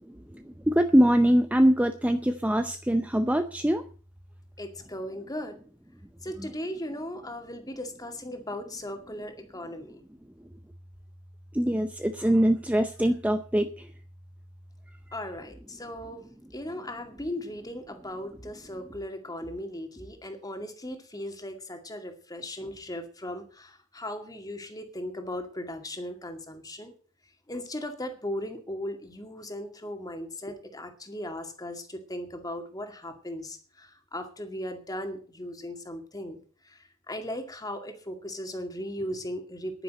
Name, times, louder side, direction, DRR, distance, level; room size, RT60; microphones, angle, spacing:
voice 1, 0.3-3.8 6.4-6.5 11.5-13.9, equal, 5° right, 8 dB, 0.6 m, -23 dB
voice 2, 4.6-5.6 6.2-10.0 15.1-16.3 16.5-26.9 27.5-36.4 36.7-39.8, left 1 dB, 15° left, 5 dB, 2.2 m, -37 dB
10.5 x 10.0 x 7.7 m, 0.41 s
head